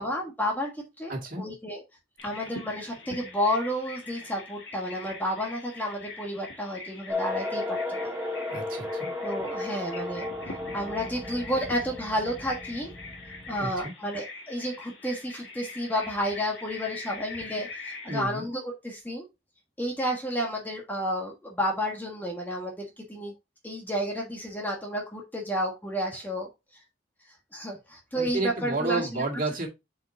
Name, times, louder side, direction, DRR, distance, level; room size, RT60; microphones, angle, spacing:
voice 1, 0.0-1.8 2.2-8.1 9.2-12.9 13.5-19.2 19.8-23.3 23.6-26.8 27.5-29.2, equal, 10° left, 0 dB, 1.3 m, -31 dB
voice 2, 1.1-1.4 8.5-9.1 13.6-13.9 18.1-18.4 26.1-26.2 28.1-29.7, right 3 dB, 45° right, 1 dB, 2.2 m, -31 dB
Bird vocalization bird call bird song, 2.2-18.2, left 3 dB, 70° left, 1.9 m, -43 dB
sound 1, 7.1-13.8, left 2 dB, 10° right, 1.1 m, -34 dB
7.7 x 4.6 x 2.7 m, 0.23 s
head